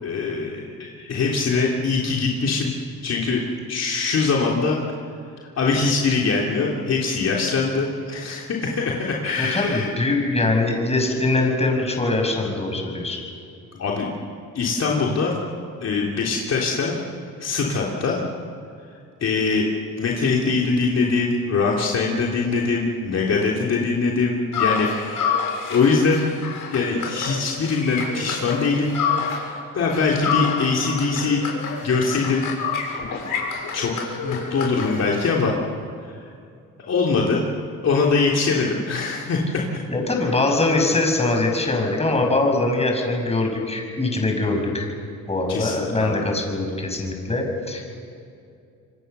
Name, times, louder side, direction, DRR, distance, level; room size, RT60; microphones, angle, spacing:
voice 1, 0.0-2.7 3.0-3.4 3.7-4.8 5.6-9.9 13.8-14.1 14.5-15.3 15.8-17.0 17.4-18.2 19.2-19.7 20.0-25.4 25.7-26.2 26.7-28.9 29.7-31.4 31.8-32.5 33.7-33.9 34.2-35.5 36.9-37.4 37.8-39.6 45.5-46.2, left 4 dB, 50° left, -2 dB, 3.5 m, -22 dB
voice 2, 9.4-13.2 39.9-44.9 45.3-47.9, left 2 dB, 20° left, 2 dB, 6.5 m, -22 dB
sound 1, 24.5-29.6 29.9-35.4, left 6 dB, 65° left, 6.7 m, -28 dB
27.0 x 24.0 x 7.0 m, 2.4 s
cardioid pair, 105°, 34 cm